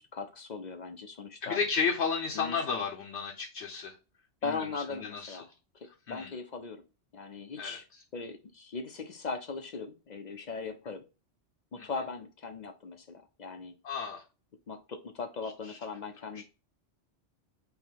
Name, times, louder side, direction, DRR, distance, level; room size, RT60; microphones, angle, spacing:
voice 1, 0.0-1.6 2.3-2.8 4.4-5.5 5.7-6.8 7.1-7.9 8.1-11.0 11.7-13.7 14.7-16.4, left 4 dB, 50° left, 0.6 m, -39 dB
voice 2, 1.4-3.9 4.5-5.4 6.1-6.3 7.6-7.8 11.8-11.9 13.8-14.2 15.7-15.8, left 5 dB, 70° left, 1.0 m, -33 dB
5.3 x 2.2 x 4.5 m
omnidirectional pair, 1.2 m